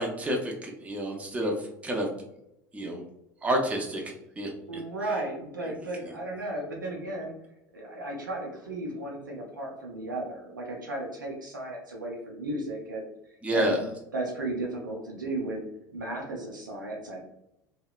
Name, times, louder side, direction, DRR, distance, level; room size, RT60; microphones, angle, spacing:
voice 1, 0.0-2.1 2.7-3.0 3.4-4.0 4.4-4.5 13.4-13.8, right 1 dB, 10° right, 0 dB, 0.5 m, -29 dB
voice 2, 4.7-7.3 7.7-13.8 14.1-15.7 15.9-17.2, right 2 dB, 80° right, -2 dB, 0.5 m, -35 dB
2.7 x 2.1 x 2.3 m, 0.82 s
figure-of-eight pair, 75°, 10 cm